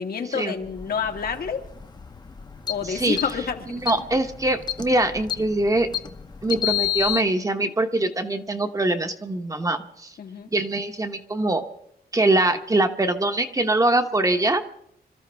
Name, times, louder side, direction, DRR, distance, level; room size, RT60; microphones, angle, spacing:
voice 1, 0.0-1.7 2.7-3.8 10.2-10.5, left 6 dB, 60° left, 5 dB, 1.6 m, -28 dB
sound 1, 0.6-7.2, left 13 dB, 25° left, 0.9 m, -31 dB
voice 2, 2.8-3.2 3.7-5.9 6.4-10.1 10.5-11.6 12.1-14.7, right 2 dB, 20° right, 6 dB, 1.1 m, -23 dB
26.0 x 14.0 x 3.5 m, 0.72 s
wide cardioid pair, 165°, 17 cm